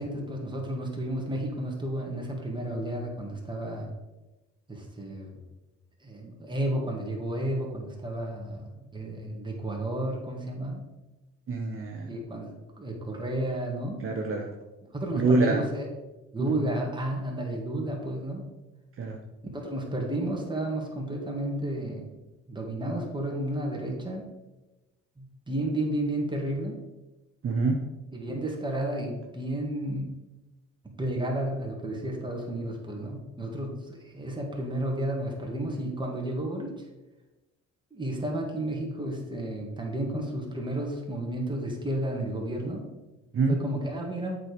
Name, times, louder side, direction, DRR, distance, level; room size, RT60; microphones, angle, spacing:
voice 1, 0.0-3.9 4.7-5.4 6.0-10.8 12.0-14.0 14.9-15.9 16.3-18.5 19.5-22.2 22.5-24.3 25.2-26.8 28.1-30.1 31.0-36.8 37.9-42.9 43.5-44.4, right 1 dB, 15° right, 0 dB, 2.0 m, -32 dB
voice 2, 11.5-12.1 14.0-14.5 15.2-15.6 16.4-16.5 19.0-19.2 27.4-27.8 43.3-43.6, right 3 dB, 45° right, 1 dB, 0.9 m, -25 dB
7.6 x 4.8 x 5.2 m, 1.1 s
cardioid pair, 90°, 30 cm